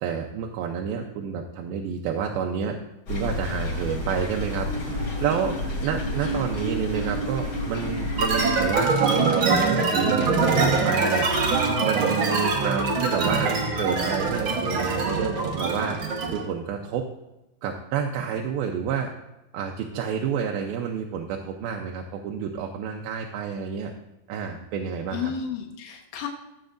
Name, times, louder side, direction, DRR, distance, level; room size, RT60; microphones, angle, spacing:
voice 1, 0.0-2.8 3.1-16.0 16.3-17.1 17.6-19.1 19.5-23.9 24.3-25.3, right 7 dB, 85° right, 2 dB, 2.5 m, -29 dB
sound 1, 3.1-8.7, left 1 dB, 35° left, 3.2 m, -30 dB
voice 2, 6.1-6.5 25.1-26.3, left 7 dB, 80° left, 1 dB, 2.7 m, -33 dB
sound 2, 8.2-16.5, right 4 dB, 70° right, 1.1 m, -23 dB
15.0 x 7.8 x 2.5 m, 0.97 s
omnidirectional pair, 4.1 m